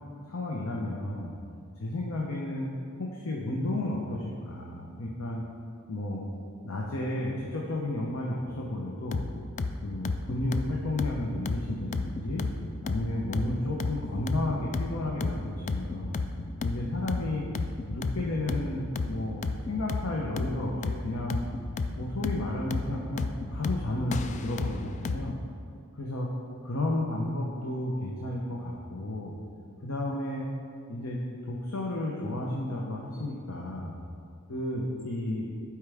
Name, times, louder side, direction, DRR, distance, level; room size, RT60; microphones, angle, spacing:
voice 1, 0.3-1.3 1.8-2.7 3.0-5.4 5.9-6.3 6.6-9.2 9.8-12.5 12.8-16.2 16.6-17.4 17.9-19.4 19.7-21.4 22.0-25.4 25.9-26.3 26.6-29.4 29.8-30.4 30.9-31.2 31.5-34.0 34.5-35.5, left 1 dB, 85° left, -2 dB, 0.8 m, -32 dB
sound 1, 9.1-25.3, left 3 dB, 35° left, 0.3 m, -33 dB
11.5 x 4.7 x 3.5 m, 2.4 s
head